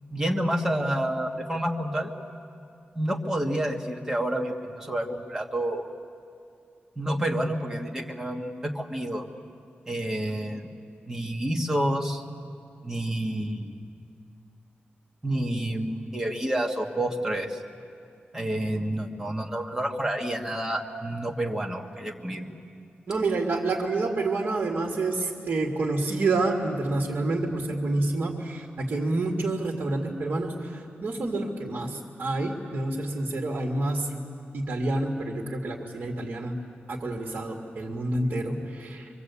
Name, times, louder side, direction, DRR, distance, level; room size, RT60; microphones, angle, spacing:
voice 1, 0.1-2.1 2.9-5.8 7.0-9.3 9.9-10.7 11.1-12.2 12.8-13.7 15.2-17.6 18.3-22.5, right 1 dB, 15° right, 1 dB, 1.7 m, -29 dB
voice 2, 23.1-30.5 31.0-34.1 34.5-36.6 36.9-39.1, right 2 dB, 55° right, 0 dB, 2.2 m, -28 dB
25.0 x 24.5 x 8.4 m, 2.4 s
wide cardioid pair, 175°, 4 cm